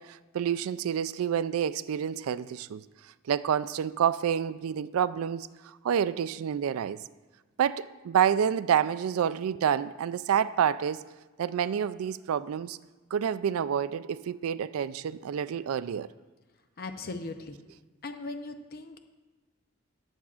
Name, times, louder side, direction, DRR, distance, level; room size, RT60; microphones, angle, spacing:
voice 1, 0.0-2.8 3.3-5.5 5.8-7.0 7.6-11.0 11.4-12.8 13.1-16.1, right 8 dB, 80° right, 16 dB, 0.3 m, -28 dB
voice 2, 16.8-17.6 18.0-19.0, left 3 dB, 45° left, 7 dB, 0.6 m, -38 dB
21.0 x 7.2 x 2.4 m, 1.3 s
head